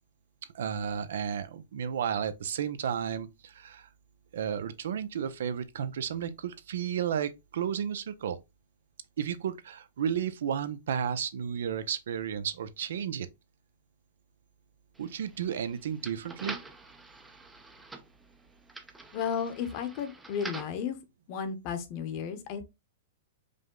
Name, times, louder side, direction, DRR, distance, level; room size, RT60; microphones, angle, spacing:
voice 1, 0.5-3.9 4.3-8.4 9.2-13.3 15.0-16.6, right 8 dB, 75° right, 0.6 m, -33 dB
sound 1, 15.0-20.8, right 3 dB, 5° right, 0.5 m, -46 dB
voice 2, 19.1-21.0 21.3-22.6, left 7 dB, 40° left, 0.9 m, -33 dB
5.0 x 2.2 x 3.7 m
hypercardioid pair, 145°, 0 cm